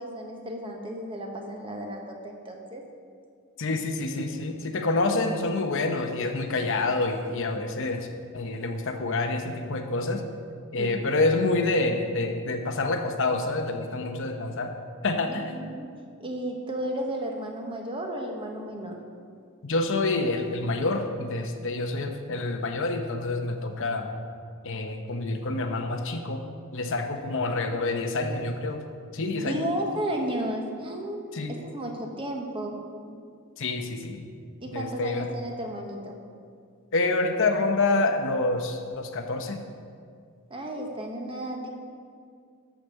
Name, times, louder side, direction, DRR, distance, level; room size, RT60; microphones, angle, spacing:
voice 1, 0.0-2.8 10.8-11.1 15.3-15.9 16.2-19.0 29.3-32.8 33.0-33.1 34.6-36.2 40.5-41.7, right 1 dB, 25° right, 2 dB, 1.2 m, -33 dB
voice 2, 3.6-8.1 8.3-10.2 10.7-14.7 15.0-15.6 19.6-24.1 24.6-26.4 26.7-28.8 29.1-29.7 31.3-31.5 33.6-34.2 34.7-35.3 36.9-39.6, left 2 dB, 60° left, 5 dB, 0.9 m, -27 dB
13.0 x 5.1 x 6.4 m, 2.2 s
head